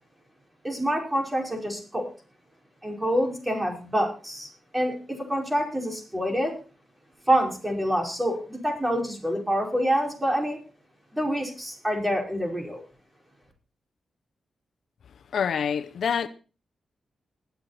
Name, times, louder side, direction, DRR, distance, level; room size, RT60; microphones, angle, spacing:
voice 1, 0.6-2.1 2.8-6.5 7.3-10.6 11.1-12.8, equal, 10° right, 5.2 m, -27 dB
voice 2, 15.3-16.3, left 7 dB, 75° left, 0.7 m, -26 dB
20.5 x 8.1 x 4.2 m
cardioid pair, 70°, 0 cm